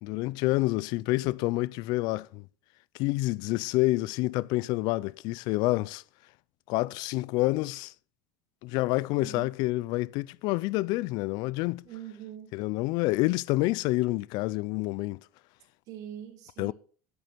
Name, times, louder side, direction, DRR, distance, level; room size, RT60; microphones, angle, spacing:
voice 1, 0.0-2.4 2.9-6.0 6.7-7.9 8.6-11.8 12.5-15.2 16.6-16.7, left 20 dB, 60° left, 0.5 m, -28 dB
voice 2, 9.1-9.5 11.8-12.5 15.9-16.7, right 10 dB, 50° right, 3.7 m, -43 dB
10.0 x 9.7 x 6.0 m
supercardioid pair, 140°, 8 cm